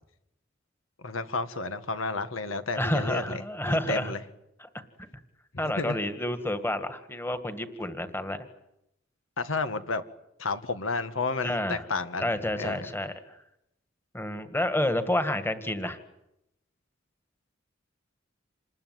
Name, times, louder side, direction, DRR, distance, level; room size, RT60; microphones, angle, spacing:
voice 1, 1.0-4.2 5.5-6.0 9.4-10.0 10.4-12.3 12.6-12.9, left 3 dB, 85° left, 10 dB, 1.8 m, -31 dB
voice 2, 2.8-4.1 4.6-4.7 5.6-8.4 11.4-11.8 12.2-13.4 14.1-16.0, left 1 dB, 10° left, 9 dB, 1.9 m, -29 dB
27.5 x 21.0 x 9.6 m, 0.84 s
head